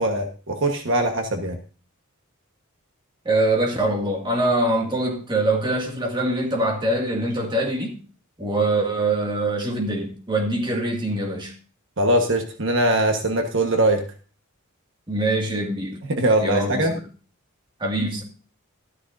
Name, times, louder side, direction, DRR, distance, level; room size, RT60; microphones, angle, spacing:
voice 1, 0.0-1.6 12.0-14.1 16.1-17.0, right 1 dB, 60° right, 1.4 m, -21 dB
voice 2, 3.3-8.0 8.4-11.5 15.1-16.0 16.4-17.0 17.8-18.2, right 1 dB, 20° right, 2.2 m, -23 dB
13.0 x 12.5 x 2.7 m
head